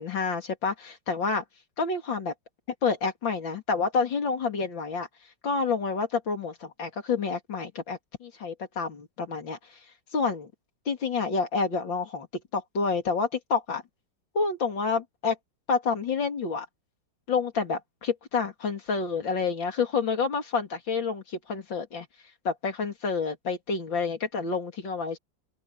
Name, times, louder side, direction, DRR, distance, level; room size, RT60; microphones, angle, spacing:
voice 1, 0.0-1.4 1.8-2.3 2.8-5.1 5.4-9.8 10.1-10.5 10.9-12.3 12.5-13.8 14.4-15.4 15.7-16.7 17.3-22.1 22.5-25.2, left 5 dB, 90° left, 3.4 m, -28 dB
open air
omnidirectional pair, 2.0 m